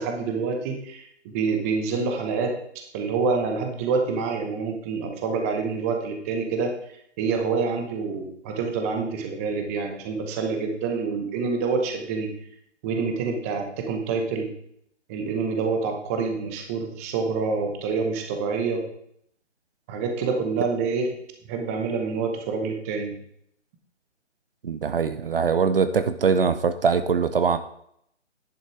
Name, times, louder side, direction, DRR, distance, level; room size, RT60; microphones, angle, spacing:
voice 1, 0.0-2.5 2.9-6.7 7.2-12.3 12.8-14.5 15.1-18.8 19.9-21.1 21.5-23.1, right 4 dB, 15° right, 4 dB, 0.8 m, -27 dB
voice 2, 24.6-27.6, right 5 dB, 50° right, 11 dB, 0.7 m, -22 dB
10.5 x 6.4 x 4.6 m, 0.71 s
figure-of-eight pair, 145°, 36 cm